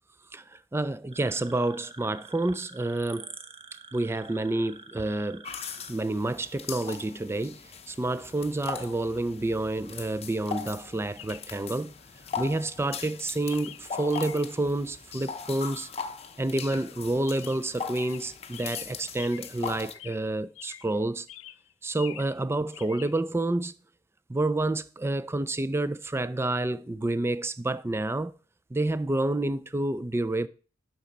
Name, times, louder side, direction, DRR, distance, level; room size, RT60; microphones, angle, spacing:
voice 1, 0.3-3.3 3.9-5.5 5.9-11.9 12.4-15.9 16.4-21.3 21.8-23.7 24.3-28.3 28.7-30.5, right 2 dB, 15° right, 0.4 m, -29 dB
sound 1, 1.1-5.9, right 4 dB, 30° right, 0.9 m, -47 dB
sound 2, 5.4-19.9, left 6 dB, 30° left, 0.7 m, -40 dB
Chirp tweet, 8.4-8.5 11.2-11.6 12.3-12.5 12.9-14.6 16.5-17.0 17.2-19.6 19.9-21.0 21.3-22.4 22.7-23.1, left 13 dB, 70° left, 0.4 m, -47 dB
11.5 x 4.1 x 5.1 m
head